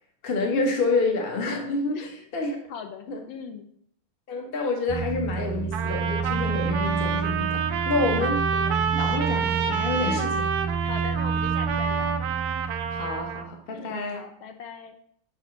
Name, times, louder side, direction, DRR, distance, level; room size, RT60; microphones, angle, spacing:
voice 1, 0.2-2.6 3.1-3.2 4.3-8.4 8.9-10.2 12.9-14.2, left 3 dB, 50° left, 2 dB, 0.6 m, -28 dB
voice 2, 1.8-2.3 2.7-3.7 8.0-8.8 10.0-10.4 10.8-12.2 13.7-15.0, left 7 dB, 75° left, 6 dB, 1.3 m, -40 dB
sound 1, 4.9-13.5, right 5 dB, 55° right, 0.6 m, -29 dB
Trumpet, 5.7-13.5, right 6 dB, 75° right, 1.1 m, -28 dB
7.3 x 2.8 x 5.0 m, 0.65 s
omnidirectional pair, 2.4 m